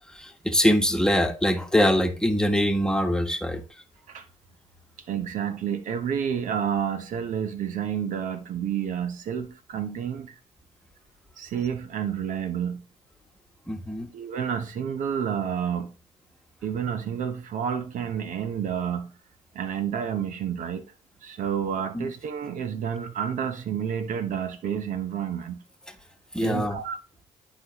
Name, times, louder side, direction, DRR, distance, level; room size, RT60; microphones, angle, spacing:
voice 1, 0.1-3.8 13.7-14.1 21.9-22.1 26.3-26.8, equal, 5° left, 1.3 m, -23 dB
voice 2, 5.1-10.4 11.4-12.8 14.1-15.9 16.6-19.1 19.5-20.8 21.2-25.6 26.4-27.0, right 8 dB, 65° right, 0.9 m, -30 dB
11.5 x 4.1 x 3.0 m
hypercardioid pair, 55°, 14 cm